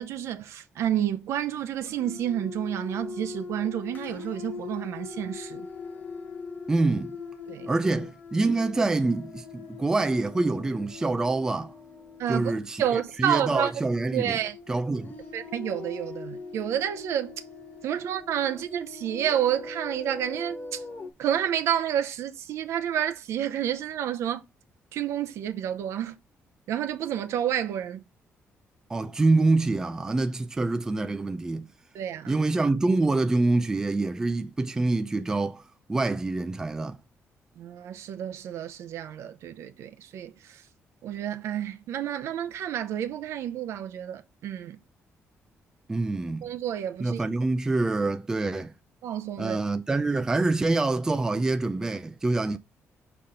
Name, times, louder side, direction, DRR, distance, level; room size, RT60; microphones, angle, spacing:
voice 1, 0.0-5.7 7.5-7.7 12.2-12.5 12.8-13.7 14.1-14.6 15.3-17.4 17.8-20.8 21.2-24.4 24.9-26.2 26.7-28.0 31.9-32.4 37.6-40.6 41.0-44.8 46.4-47.2 49.0-49.6, right 10 dB, 75° right, 0.6 m, -30 dB
sound 1, 1.8-21.1, left 4 dB, 35° left, 1.2 m, -41 dB
voice 2, 6.7-7.1 7.7-11.7 12.3-12.8 13.2-14.4 14.7-15.1 28.9-31.7 32.3-35.6 35.9-37.0 45.9-46.5 47.0-48.7 49.4-52.6, right 3 dB, 10° right, 0.4 m, -26 dB
5.6 x 4.2 x 5.0 m
cardioid pair, 180°, 5 cm